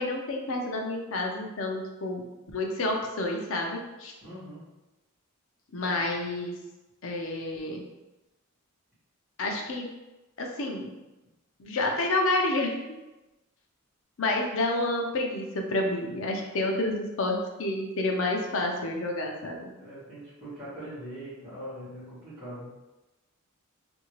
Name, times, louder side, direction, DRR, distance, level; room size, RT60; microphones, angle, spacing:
voice 1, 0.0-2.2 2.5-4.1 5.7-6.6 7.0-7.8 9.4-9.9 10.4-10.9 11.6-12.8 14.2-19.7, left 2 dB, 65° left, 1 dB, 0.5 m, -29 dB
voice 2, 4.2-4.7 5.8-6.0 16.6-16.8 19.8-22.7, equal, 25° right, -15 dB, 1.3 m, -42 dB
2.7 x 2.7 x 3.0 m, 1.0 s
head